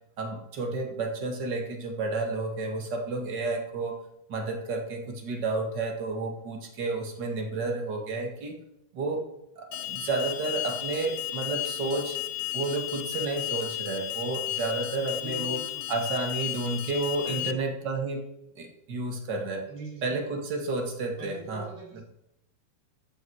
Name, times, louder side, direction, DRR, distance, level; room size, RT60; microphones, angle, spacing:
voice 1, 0.2-4.0 4.3-8.6 8.9-9.3 9.6-12.2 12.5-15.6 15.9-18.3 18.6-19.7 20.0-21.7 21.9-22.0, right 3 dB, 40° right, 3 dB, 1.7 m, -31 dB
Alarm, 9.7-17.5, left 15 dB, 85° left, 1.8 m, -34 dB
voice 2, 15.1-15.9 17.2-17.7 19.7-20.2 21.2-22.0, right 3 dB, 55° right, -3 dB, 5.4 m, -42 dB
13.5 x 8.6 x 4.8 m, 0.82 s
omnidirectional pair, 4.5 m